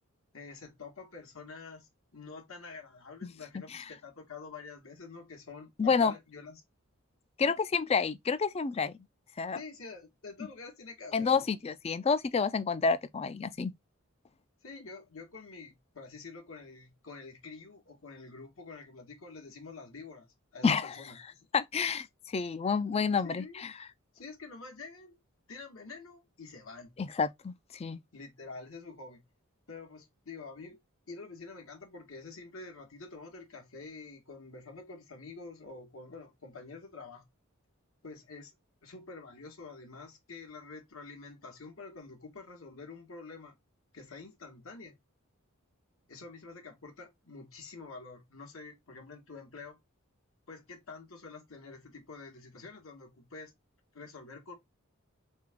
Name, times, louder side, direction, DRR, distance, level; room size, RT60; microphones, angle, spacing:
voice 1, 0.3-6.6 7.4-7.6 9.5-11.5 14.6-21.5 23.2-23.7 24.1-25.2 25.5-26.9 28.1-29.2 29.7-30.8 31.1-37.3 38.0-38.5 38.8-43.6 43.9-45.0 46.1-49.8 50.5-53.5 53.9-54.5, left 4 dB, 75° left, 1.6 m, -47 dB
voice 2, 5.8-6.1 7.4-8.9 9.4-9.6 11.1-13.7 20.6-21.0 21.5-23.7 27.0-28.0, left 5 dB, 30° left, 0.4 m, -29 dB
3.8 x 3.6 x 3.5 m
head